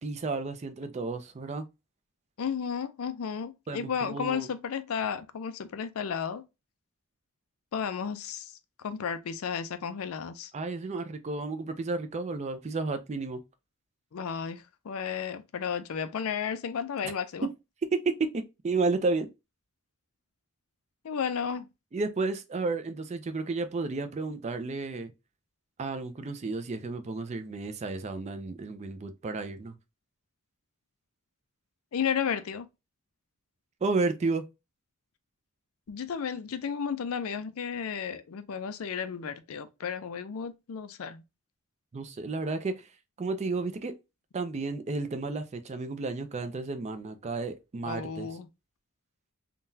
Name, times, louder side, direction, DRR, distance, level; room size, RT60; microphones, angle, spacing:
voice 1, 0.0-1.7 3.7-4.5 10.5-13.4 17.9-19.3 21.9-25.1 25.8-29.8 33.8-34.5 41.9-42.9 43.2-43.9 44.3-48.3, right 3 dB, 30° right, 0.4 m, -32 dB
voice 2, 2.4-6.4 7.7-8.5 8.8-10.5 14.1-17.5 21.0-21.7 31.9-32.7 35.9-41.2 47.8-48.5, left 7 dB, 70° left, 0.4 m, -33 dB
3.7 x 2.2 x 2.6 m
head